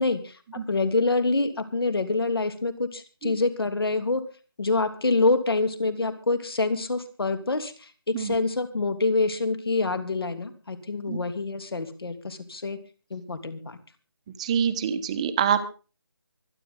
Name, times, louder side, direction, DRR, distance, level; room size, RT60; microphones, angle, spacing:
voice 1, 0.0-4.2 4.6-12.8 13.1-13.8, left 3 dB, 65° left, 9 dB, 3.0 m, -26 dB
voice 2, 14.4-15.6, right 8 dB, 15° right, 10 dB, 1.0 m, -25 dB
25.0 x 10.0 x 3.9 m, 0.35 s
figure-of-eight pair, 165°, 13 cm